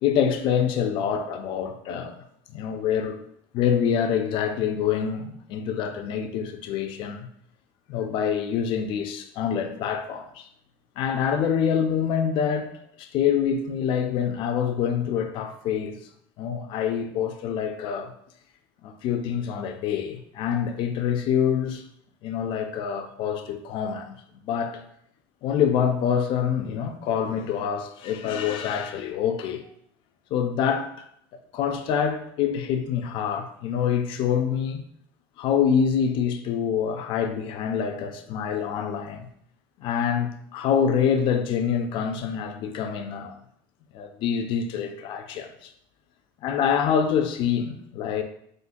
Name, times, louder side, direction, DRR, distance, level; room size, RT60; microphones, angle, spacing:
voice 1, 0.0-2.2 2.5-3.2 3.5-7.3 7.9-10.5 11.0-12.7 13.0-16.1 16.4-18.1 18.8-21.8 22.2-24.2 24.4-24.8 25.4-29.7 30.3-30.9 31.3-34.8 35.4-39.3 39.8-43.4 43.9-45.7 46.4-48.2, left 8 dB, 50° left, 0.3 m, -26 dB
3.7 x 2.1 x 2.5 m
cardioid pair, 150°, 11 cm